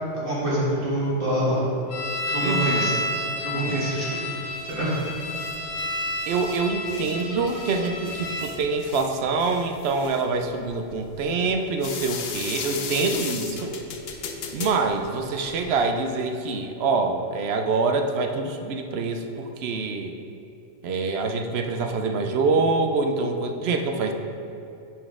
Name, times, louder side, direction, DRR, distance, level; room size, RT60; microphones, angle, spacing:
voice 1, 0.1-1.7 2.3-2.9 3.4-4.2 4.7-5.1, right 1 dB, 45° right, -8 dB, 1.7 m, -26 dB
sound 1, 1.9-8.5, left 1 dB, 90° left, 1.3 m, -30 dB
voice 2, 2.4-3.0 3.5-3.8 6.3-13.7 14.5-20.2 20.8-24.1, right 3 dB, 65° right, 5 dB, 0.8 m, -25 dB
sound 2, 4.5-15.8, left 5 dB, 60° left, 0.8 m, -37 dB
9.7 x 4.1 x 3.6 m, 2.9 s
omnidirectional pair, 1.3 m